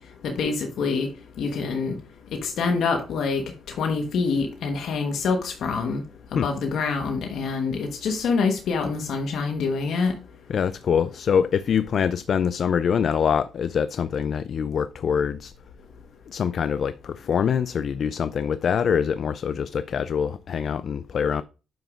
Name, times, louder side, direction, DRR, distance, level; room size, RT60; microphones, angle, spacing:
voice 1, 0.2-1.1 1.4-1.9 2.4-6.0 6.3-10.1, left 4 dB, 75° left, 1.2 m, -26 dB
voice 2, 10.5-15.5 16.3-21.4, left 7 dB, 55° left, 0.3 m, -24 dB
9.2 x 6.9 x 2.5 m
cardioid pair, 90°, 0 cm